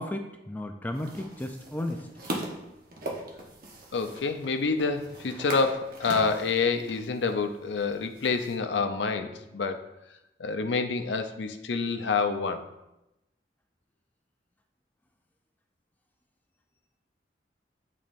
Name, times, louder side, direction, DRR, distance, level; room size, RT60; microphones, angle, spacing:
voice 1, 0.0-2.0, left 1 dB, 10° left, 5 dB, 0.3 m, -34 dB
sound 1, 0.9-8.6, right 1 dB, 55° right, 1.0 m, -41 dB
voice 2, 3.9-9.8 10.4-12.6, left 4 dB, 80° left, 7 dB, 0.5 m, -28 dB
9.0 x 4.1 x 2.6 m, 0.93 s
head